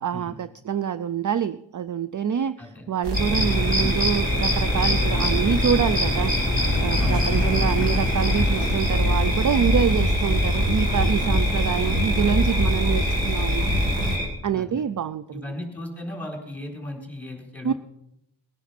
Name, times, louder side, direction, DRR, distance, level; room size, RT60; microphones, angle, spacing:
voice 1, 0.0-13.6 14.4-15.4 17.6-17.7, right 8 dB, 45° right, 15 dB, 0.4 m, -26 dB
voice 2, 2.6-2.9 7.0-7.3 14.5-14.8 15.3-17.7, left 1 dB, 5° left, 1 dB, 4.1 m, -36 dB
sound 1, 3.0-14.2, equal, 65° right, 2.9 m, -24 dB
sound 2, 3.1-14.3, equal, 20° right, 3.8 m, -27 dB
Engine, 3.3-8.8, left 4 dB, 30° left, 0.7 m, -32 dB
20.0 x 10.0 x 5.8 m, 0.83 s
wide cardioid pair, 135°, 45 cm